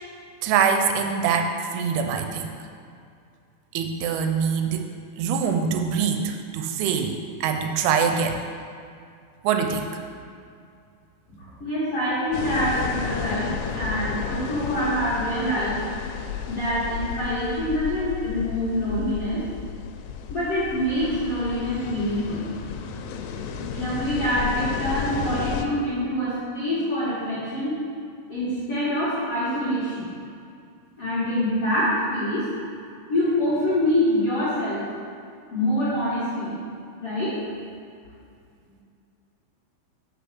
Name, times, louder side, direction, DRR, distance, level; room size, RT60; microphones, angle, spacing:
voice 1, 0.4-2.5 3.7-4.9 5.2-7.2 7.4-8.4 9.4-9.9, right 6 dB, 85° right, 5 dB, 3.0 m, -24 dB
voice 2, 11.3-15.8 16.5-19.4 20.3-22.5 23.7-27.7 28.3-30.1 31.0-32.5 33.1-34.9 35.5-36.5 37.0-37.3, equal, 60° left, -13 dB, 1.6 m, -25 dB
sound 1, 12.3-25.7, left 7 dB, 85° left, 3.1 m, -33 dB
6.1 x 5.9 x 5.8 m, 2.3 s
omnidirectional pair, 5.5 m